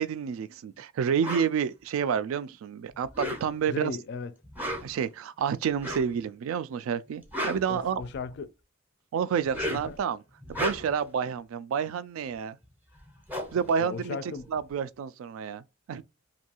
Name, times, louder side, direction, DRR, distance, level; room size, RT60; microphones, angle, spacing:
voice 1, 0.0-4.0 4.8-8.0 9.1-10.2 10.5-12.6 13.5-14.2 14.5-16.0, right 7 dB, 80° right, 0.3 m, -29 dB
sound 1, 1.2-1.5 3.0-3.7 4.4-5.0 5.8-6.2 7.1-8.3 9.4-10.0 10.4-11.1 12.6-12.7 13.0-14.7, equal, 10° right, 0.5 m, -35 dB
voice 2, 3.7-4.3 7.7-8.5 9.7-10.0 13.8-14.5, left 5 dB, 55° left, 0.3 m, -36 dB
2.6 x 2.3 x 2.8 m
head